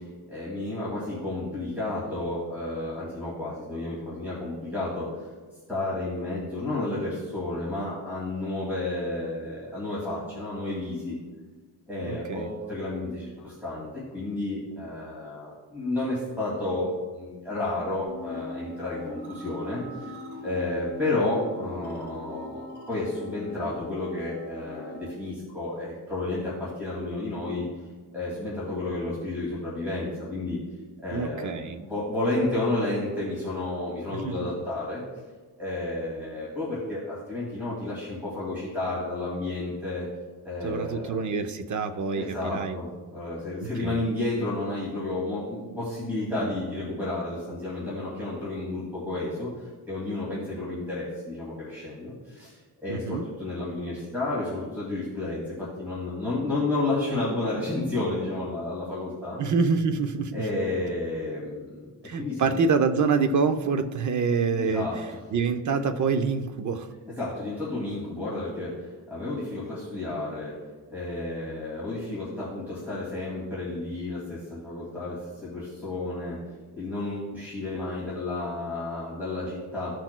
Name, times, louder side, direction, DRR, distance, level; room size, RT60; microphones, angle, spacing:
voice 1, 0.3-5.0 5.7-11.1 11.9-13.3 13.6-13.9 14.1-16.9 17.2-19.8 20.4-22.5 22.9-26.4 26.8-27.6 28.1-30.6 31.0-35.0 35.6-40.0 40.5-41.1 42.1-42.9 43.1-49.5 49.9-52.1 52.8-55.4 55.8-59.4 60.3-61.6 62.2-62.6 64.6-64.9 67.2-68.7 69.1-69.6 69.9-70.5 70.9-75.2 75.4-76.4 76.8-79.9, left 2 dB, 5° right, -7 dB, 2.2 m, -31 dB
voice 2, 12.0-12.5 31.1-31.8 34.2-34.5 40.6-42.8 43.6-44.0 52.9-53.3 59.4-60.4 62.0-66.9, right 5 dB, 45° right, 7 dB, 0.6 m, -26 dB
sound 1, 18.1-25.1, left 1 dB, 65° right, 2.1 m, -41 dB
16.0 x 6.1 x 2.2 m, 1.3 s
wide cardioid pair, 160°, 40 cm